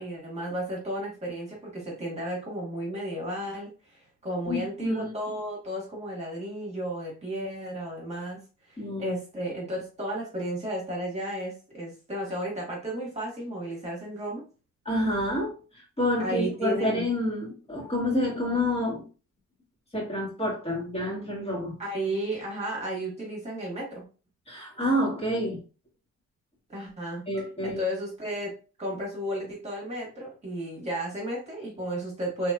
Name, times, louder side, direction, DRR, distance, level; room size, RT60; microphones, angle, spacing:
voice 1, 0.0-8.4 8.7-14.4 16.2-17.0 21.8-24.0 26.7-27.2 27.6-28.5 28.8-32.5, right 1 dB, 20° right, -4 dB, 1.6 m, -33 dB
voice 2, 4.5-5.1 8.8-9.1 14.8-15.5 16.0-19.0 19.9-21.7 24.5-25.6 27.3-27.8, left 1 dB, 20° left, -5 dB, 1.6 m, -28 dB
3.1 x 2.9 x 2.4 m, 0.35 s
cardioid pair, 90°, 30 cm